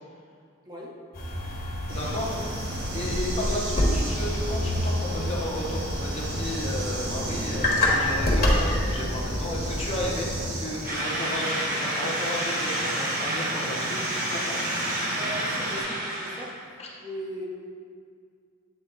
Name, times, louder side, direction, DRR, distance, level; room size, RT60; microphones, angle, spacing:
voice 1, 0.7-1.0 15.1-17.5, equal, 20° right, -3 dB, 0.8 m, -38 dB
sound 1, 1.1-10.4, left 1 dB, 45° left, 1.3 m, -27 dB
voice 2, 1.9-2.4 2.9-10.3 10.6-14.0 14.3-14.5 16.8-16.9, left 1 dB, 30° left, -3 dB, 0.8 m, -33 dB
sound 2, 1.9-15.8, right 1 dB, 75° right, 1.4 m, -36 dB
sound 3, 10.9-16.6, right 1 dB, 45° right, 1.2 m, -29 dB
8.1 x 3.4 x 3.9 m, 2.2 s
head